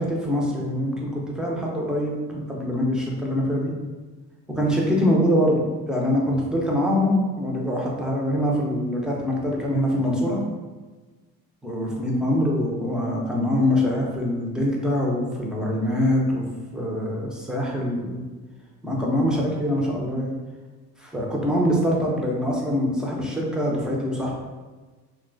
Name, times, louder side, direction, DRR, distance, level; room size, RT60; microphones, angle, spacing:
voice 1, 0.0-3.7 4.5-10.4 11.6-16.4 16.7-18.2 18.8-20.3 21.0-24.3, equal, ahead, -2 dB, 0.6 m, -24 dB
2.9 x 2.3 x 2.5 m, 1.3 s
hypercardioid pair, 60°, 47 cm